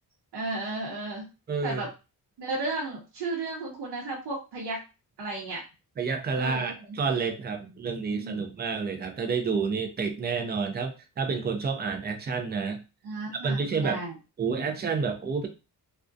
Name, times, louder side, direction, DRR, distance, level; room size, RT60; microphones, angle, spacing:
voice 1, 0.3-1.3 1.6-1.9 2.4-4.8 5.2-5.6 6.4-7.0 7.6-7.7 8.1-8.4 13.0-14.2, right 2 dB, 85° right, -3 dB, 0.8 m, -34 dB
voice 2, 1.5-1.8 6.0-12.8 13.4-14.0 14.4-15.5, right 5 dB, 25° right, 5 dB, 0.4 m, -29 dB
2.3 x 2.1 x 2.5 m, 0.29 s
wide cardioid pair, 125°, 39 cm